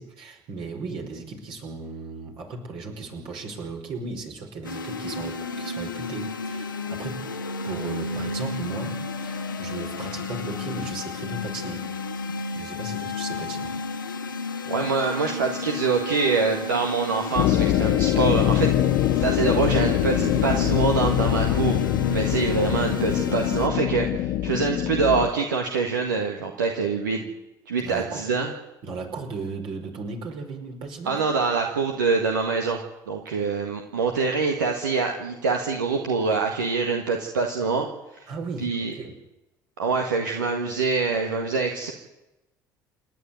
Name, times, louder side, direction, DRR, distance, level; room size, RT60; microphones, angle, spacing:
voice 1, 0.0-7.3 7.6-11.9 12.5-13.8 20.6-20.7 27.8-28.3 28.8-31.3 38.3-39.2, right 3 dB, 55° right, 2 dB, 5.2 m, -36 dB
sound 1, 4.6-23.7, left 3 dB, 85° left, 1.2 m, -32 dB
voice 2, 14.6-21.8 22.1-27.3 27.7-28.5 31.0-32.8 33.1-38.3 38.6-38.9 39.8-41.9, right 4 dB, 80° right, 2 dB, 1.7 m, -25 dB
sound 2, 17.4-25.3, left 13 dB, 60° left, 0.9 m, -23 dB
28.5 x 11.0 x 9.4 m, 0.97 s
figure-of-eight pair, 55°, 10 cm